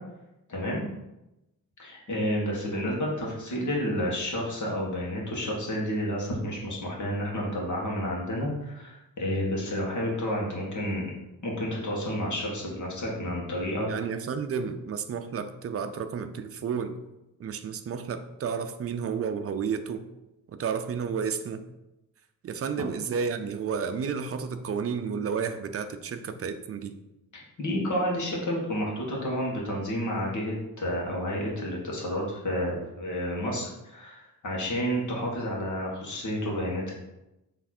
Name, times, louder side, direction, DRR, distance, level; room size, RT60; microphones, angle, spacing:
voice 1, 0.5-0.8 1.8-11.1 11.4-13.9 27.3-36.9, equal, 55° left, -2 dB, 1.8 m, -30 dB
voice 2, 13.9-16.9 17.4-20.0 20.5-21.6 22.4-26.9, right 6 dB, 40° right, 7 dB, 0.5 m, -31 dB
7.1 x 3.3 x 4.3 m, 0.93 s
wide cardioid pair, 165°, 36 cm